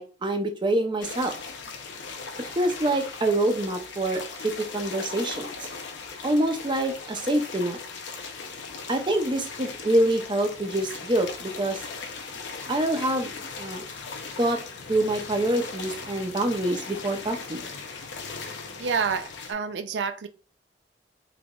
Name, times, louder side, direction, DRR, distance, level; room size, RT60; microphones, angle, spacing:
voice 1, 0.0-1.3 2.6-5.5 6.2-7.8 8.9-11.8 12.7-13.3 13.6-13.8 14.4-14.6 14.9-17.6, right 1 dB, 25° right, 4 dB, 0.6 m, -26 dB
sound 1, 1.0-19.5, left 4 dB, 85° left, 0.7 m, -38 dB
voice 2, 18.8-20.3, right 5 dB, 70° right, 9 dB, 0.4 m, -28 dB
3.9 x 3.0 x 2.4 m, 0.37 s
head